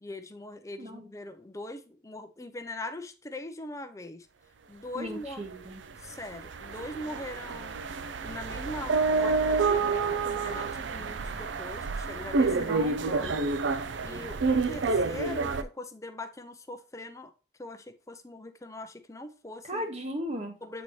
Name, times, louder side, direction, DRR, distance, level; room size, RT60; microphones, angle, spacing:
voice 1, 0.0-4.3 4.7-5.4 6.0-7.8 8.2-13.5 14.0-17.3 17.6-19.9 20.6-20.8, left 2 dB, 15° left, 0.6 m, -41 dB
voice 2, 0.8-1.1 4.9-5.8 12.5-13.3 19.6-20.6, equal, 35° right, 1.3 m, -37 dB
sound 1, 5.5-5.6 5.9-15.6, right 4 dB, 80° right, 0.5 m, -29 dB
8.4 x 4.2 x 3.1 m
head